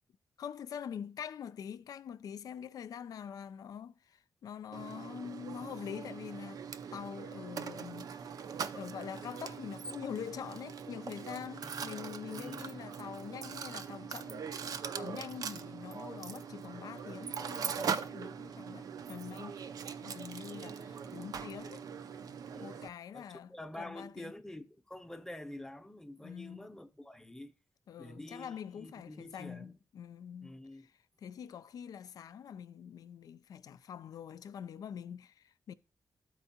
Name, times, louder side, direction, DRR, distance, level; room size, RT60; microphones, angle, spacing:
voice 1, 0.4-6.6 6.9-8.1 8.7-19.6 20.0-21.8 22.6-24.3 26.2-26.7 27.9-30.9 31.2-35.7, left 8 dB, 70° left, 0.3 m, -45 dB
Mechanisms, 4.7-22.9, right 6 dB, 70° right, 0.4 m, -41 dB
voice 2, 11.6-12.0 12.3-12.7 22.4-22.8 23.1-27.5 28.0-29.8 30.4-30.9, left 1 dB, 5° left, 0.7 m, -47 dB
13.0 x 4.5 x 2.8 m
cardioid pair, 100°, 7 cm